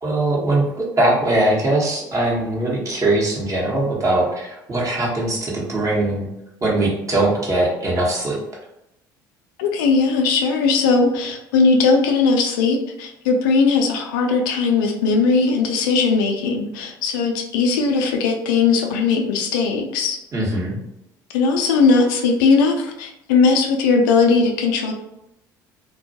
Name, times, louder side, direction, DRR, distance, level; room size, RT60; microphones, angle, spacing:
voice 1, 0.0-6.3 6.6-8.4 20.3-20.8, right 2 dB, 30° right, -3 dB, 0.9 m, -21 dB
voice 2, 9.6-20.2 21.3-24.9, left 4 dB, 75° left, 3 dB, 0.4 m, -18 dB
2.2 x 2.1 x 2.7 m, 0.84 s
hypercardioid pair, 65°, 11 cm